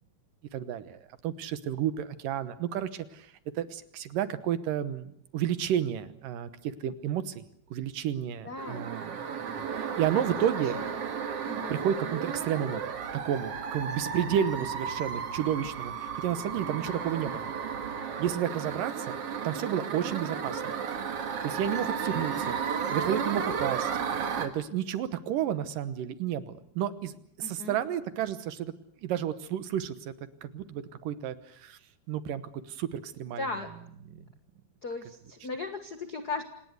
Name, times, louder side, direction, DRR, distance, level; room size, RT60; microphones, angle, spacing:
voice 1, 0.5-7.4 7.7-10.8 11.7-12.8 13.1-17.5 18.2-19.2 19.4-20.7 21.4-28.7 29.0-30.1 30.4-31.8 32.1-33.5 34.1-34.2, right 10 dB, 70° right, 13 dB, 2.6 m, -31 dB
voice 2, 8.4-8.9 10.1-10.2 10.6-10.9 11.5-11.9 16.8-17.0 22.1-22.3 27.4-27.8 33.4-33.7 34.8-36.4, left 3 dB, 70° left, 8 dB, 0.9 m, -37 dB
sound 1, 8.6-24.5, right 6 dB, 45° right, 2.4 m, -34 dB
27.5 x 19.0 x 8.0 m, 0.69 s
omnidirectional pair, 4.4 m